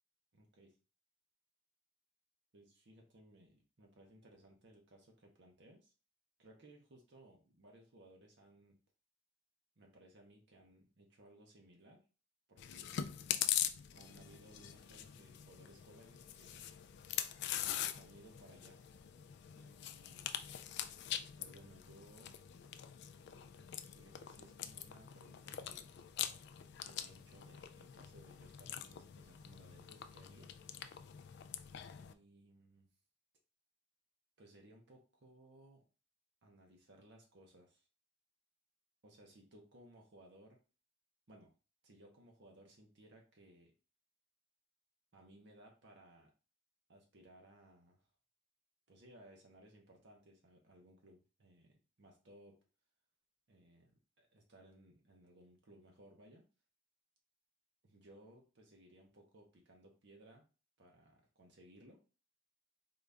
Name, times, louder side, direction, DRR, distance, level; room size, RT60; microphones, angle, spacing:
voice 1, 0.3-0.7 2.5-5.9 6.4-8.8 9.8-12.0 12.5-13.1 13.9-16.7 17.8-18.8 19.5-20.3 21.4-22.4 23.8-25.9 26.8-30.5 32.0-32.9 34.4-35.8 36.4-37.9 39.0-40.6 41.3-41.5 41.8-43.7 45.1-46.3 46.9-48.0 48.9-52.6 53.5-56.5 57.8-60.5 60.8-62.0, right 1 dB, 60° right, 1 dB, 0.8 m, -62 dB
Chewing mastication, 12.6-32.1, left 10 dB, 55° left, 0.3 m, -43 dB
3.8 x 2.4 x 3.3 m, 0.34 s
head